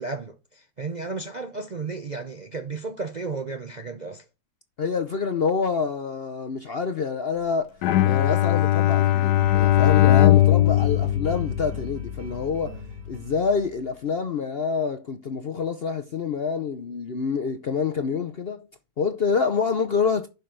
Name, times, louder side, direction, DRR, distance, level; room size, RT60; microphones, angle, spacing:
voice 1, 0.0-4.2, right 3 dB, 45° right, 0.6 m, -33 dB
voice 2, 4.8-7.8 8.0-18.6 19.0-20.3, left 5 dB, 55° left, 0.7 m, -27 dB
Bowed string instrument, 7.8-12.2, left 13 dB, 80° left, 1.2 m, -19 dB
sound 1, 9.4-13.9, left 2 dB, 80° right, 2.4 m, -36 dB
11.0 x 5.5 x 3.8 m
omnidirectional pair, 1.8 m